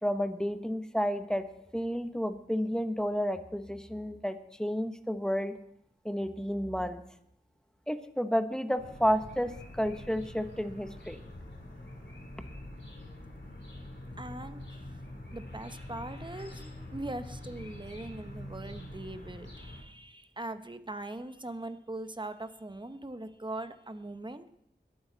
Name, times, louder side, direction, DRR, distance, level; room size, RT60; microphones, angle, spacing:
voice 1, 0.0-1.4 1.7-5.5 6.0-7.0 7.9-11.2, equal, 5° left, 8 dB, 1.1 m, -31 dB
sound 1, 8.8-19.8, left 1 dB, 85° left, 3.4 m, -45 dB
voice 2, 14.2-15.0 15.3-16.6 16.9-24.5, right 2 dB, 25° right, 9 dB, 1.0 m, -41 dB
22.5 x 8.7 x 4.0 m, 0.72 s
wide cardioid pair, 45°, 19 cm